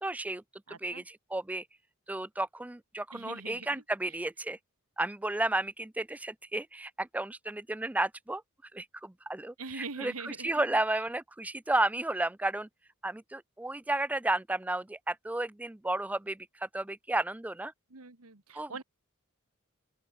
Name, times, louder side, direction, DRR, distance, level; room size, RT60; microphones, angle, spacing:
voice 1, 0.0-0.4 0.8-1.6 2.1-4.6 5.0-8.4 8.7-12.7 13.0-17.7 18.5-18.8, right 2 dB, 5° right, 0.4 m, -33 dB
voice 2, 0.7-1.0 3.1-3.8 9.6-10.7 17.9-18.8, right 4 dB, 85° right, 1.9 m, -43 dB
open air
head